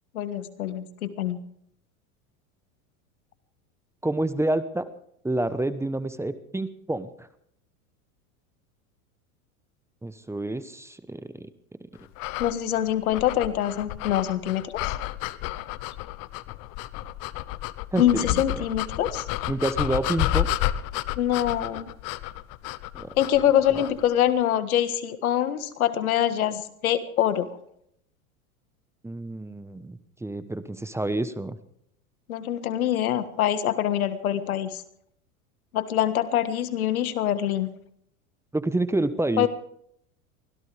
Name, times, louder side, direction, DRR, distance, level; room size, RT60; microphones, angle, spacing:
voice 1, 0.1-1.4 12.4-14.9 18.0-19.2 21.2-21.9 23.2-27.5 32.3-34.8 35.7-37.7 39.4-39.5, left 11 dB, 80° left, 12 dB, 1.6 m, -24 dB
voice 2, 4.0-4.9 5.2-7.3 10.0-11.5 11.8-11.9 17.9-18.6 19.5-20.5 22.9-23.1 23.7-23.8 29.0-31.6 38.5-39.5, right 2 dB, 5° right, 13 dB, 1.0 m, -28 dB
sound 1, 12.2-24.1, left 15 dB, 50° left, 0.9 m, -31 dB
24.0 x 17.0 x 3.4 m, 0.69 s
hypercardioid pair, 95°, 42 cm